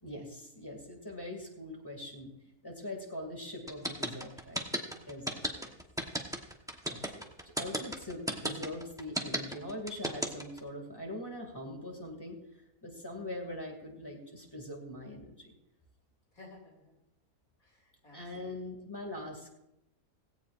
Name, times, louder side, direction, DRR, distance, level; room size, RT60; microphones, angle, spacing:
voice 1, 0.0-2.3 2.6-4.7 4.9-5.4 6.8-7.2 7.6-12.4 12.8-15.5 18.1-19.5, left 1 dB, 15° left, 1 dB, 2.3 m, -42 dB
sound 1, 3.7-10.6, equal, 5° right, 0.9 m, -33 dB
voice 2, 5.3-5.7 16.3-17.0 17.6-18.6, left 2 dB, 65° left, -1 dB, 3.1 m, -56 dB
17.0 x 16.5 x 2.5 m, 0.86 s
omnidirectional pair, 1.6 m